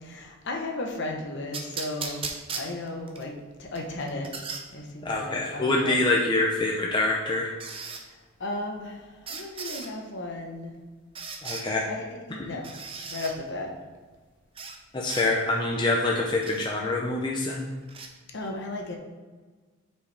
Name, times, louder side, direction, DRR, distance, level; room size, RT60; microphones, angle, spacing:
voice 1, 0.0-2.2 2.6-4.3 4.7-5.9 8.4-10.7 11.8-12.0 12.3-12.7 13.1-13.7 18.3-19.0, left 2 dB, 50° left, 1 dB, 0.9 m, -35 dB
sound 1, 1.5-3.2 3.8-4.6 6.2-6.3 7.6-8.0 9.3-9.9 11.2-11.7 12.6-13.3 14.6-14.8 15.1-15.3 16.4-16.7 17.9-18.1, right 5 dB, 25° right, 0.5 m, -36 dB
voice 2, 5.0-7.5 11.4-11.8 14.9-17.7, left 2 dB, 20° left, -2 dB, 0.5 m, -25 dB
8.4 x 4.6 x 3.3 m, 1.4 s
head